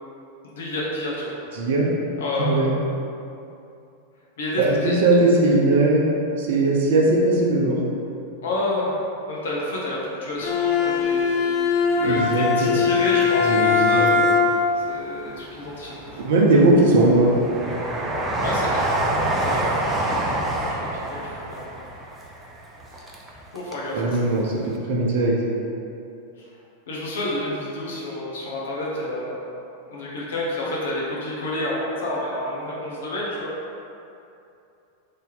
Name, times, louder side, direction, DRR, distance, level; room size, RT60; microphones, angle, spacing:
voice 1, 0.6-1.3 2.2-2.5 4.4-5.0 8.4-8.9 9.3-11.4 11.9-12.2 12.6-14.3 14.8-16.2 18.4-18.8 19.4-20.3 20.7-20.8 21.1-21.8 22.9-23.0 23.5-24.0 24.3-24.4 26.4-26.5 26.9-29.4 29.9-33.5, left 1 dB, 60° left, -5 dB, 0.7 m, -29 dB
voice 2, 1.5-1.9 2.4-2.7 4.5-6.0 6.4-7.8 12.0-12.8 13.5-14.1 16.2-17.3 23.9-25.4, right 2 dB, 55° right, -2 dB, 0.6 m, -19 dB
Bowed string instrument, 10.4-14.8, left 5 dB, 45° left, 0.3 m, -20 dB
Train, 11.9-13.2 13.6-14.6 15.1-23.9 24.1-24.2, right 1 dB, 15° right, 0.5 m, -28 dB
3.2 x 2.7 x 3.9 m, 2.7 s
figure-of-eight pair, 90°, 0 cm